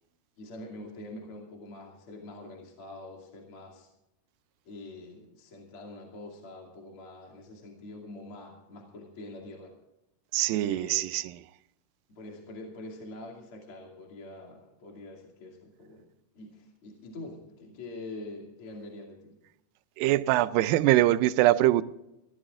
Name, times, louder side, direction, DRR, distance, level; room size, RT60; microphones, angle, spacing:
voice 1, 0.4-3.9 4.7-9.7 10.6-11.1 12.1-16.1 16.3-19.4, left 2 dB, 40° left, 3.1 m, -44 dB
voice 2, 10.3-11.3 20.0-21.8, right 15 dB, 80° right, 2.3 m, -23 dB
24.5 x 15.0 x 2.5 m
omnidirectional pair, 4.1 m